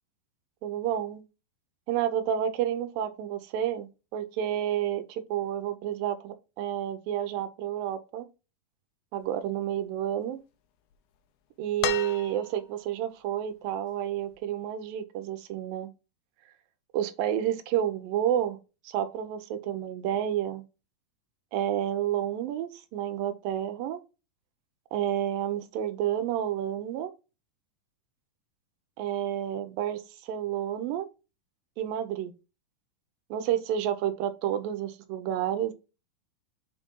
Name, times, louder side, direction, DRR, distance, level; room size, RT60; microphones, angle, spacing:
voice 1, 0.6-1.2 1.9-8.3 9.1-10.4 11.6-15.9 16.9-18.6 18.9-20.6 21.5-24.0 24.9-27.1 29.0-31.1 31.8-32.3 33.3-35.7, right 10 dB, 90° right, 2.5 m, -30 dB
sound 1, 11.8-12.8 14.3-14.4, left 10 dB, 80° left, 2.4 m, -33 dB
6.2 x 3.7 x 5.3 m
omnidirectional pair, 3.9 m